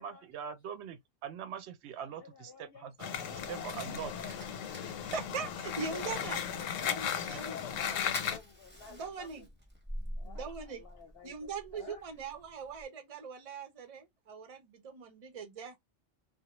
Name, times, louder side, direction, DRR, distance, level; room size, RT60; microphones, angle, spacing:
voice 1, 0.0-4.1, right 8 dB, 70° right, 0.8 m, -43 dB
voice 2, 2.0-3.7 5.7-9.4 10.2-12.0, left 6 dB, 60° left, 0.8 m, -51 dB
sound 1, 3.0-8.4, left 8 dB, 85° left, 1.0 m, -36 dB
Fire, 3.2-12.8, equal, 10° right, 0.8 m, -48 dB
voice 3, 5.0-6.4 6.8-7.6 8.9-9.5 10.2-10.8 11.2-15.8, right 5 dB, 45° right, 0.5 m, -41 dB
2.3 x 2.1 x 2.9 m
omnidirectional pair, 1.3 m